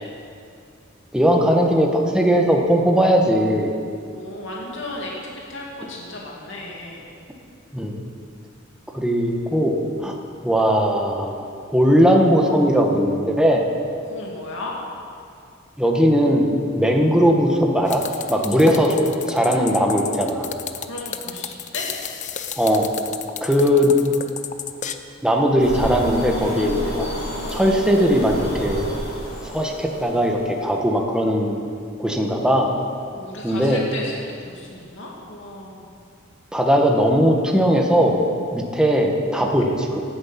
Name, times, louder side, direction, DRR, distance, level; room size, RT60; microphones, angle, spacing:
voice 1, 1.1-3.7 7.7-8.0 8.9-9.8 10.0-10.2 10.4-13.7 15.8-16.4 16.7-18.0 18.3-19.0 19.3-20.5 22.6-22.9 23.4-23.9 25.2-27.0 27.5-28.9 29.5-31.6 32.0-32.7 33.4-33.8 36.5-38.2 38.5-40.0, equal, 5° right, 1 dB, 1.5 m, -19 dB
voice 2, 4.1-5.1 5.5-7.1 14.1-14.7 20.9-21.9 33.1-35.9, left 2 dB, 65° left, -3 dB, 2.6 m, -35 dB
sound 1, 17.9-24.9, left 8 dB, 35° left, 0.7 m, -32 dB
sound 2, 25.6-30.6, equal, 90° left, 4.9 m, -29 dB
17.5 x 12.0 x 6.0 m, 2.4 s
head